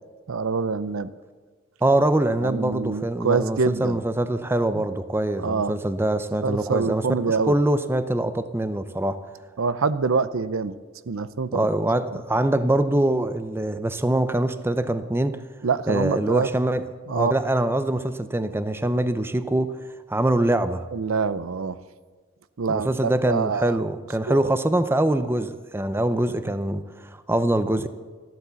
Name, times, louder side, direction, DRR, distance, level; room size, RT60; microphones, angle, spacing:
voice 1, 0.3-1.1 2.4-4.0 4.7-4.8 5.4-5.7 6.4-7.5 9.6-10.8 11.1-11.7 15.6-16.5 17.1-17.3 20.9-21.8 22.6-23.8 24.3-24.4, right 5 dB, 75° right, 0.6 m, -25 dB
voice 2, 1.8-9.2 11.5-15.4 15.9-19.8 20.1-20.8 22.7-27.9, right 1 dB, 10° right, 0.5 m, -24 dB
14.0 x 12.0 x 7.0 m
head